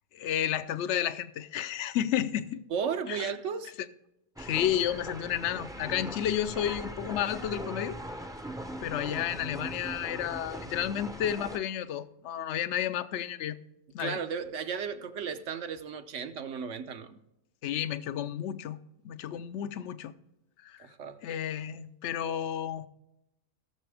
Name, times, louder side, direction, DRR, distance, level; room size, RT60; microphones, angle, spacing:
voice 1, 0.1-2.6 3.1-3.3 4.4-8.0 8.8-13.6 13.9-14.2 17.6-18.8 19.0-20.1 20.6-20.9 21.2-22.9, left 10 dB, 65° left, 0.9 m, -31 dB
voice 2, 2.7-3.7 14.0-17.2 20.8-21.2, right 6 dB, 65° right, 1.1 m, -34 dB
sound 1, 4.4-11.6, right 1 dB, 5° right, 0.5 m, -40 dB
17.0 x 6.9 x 3.4 m
omnidirectional pair, 1.4 m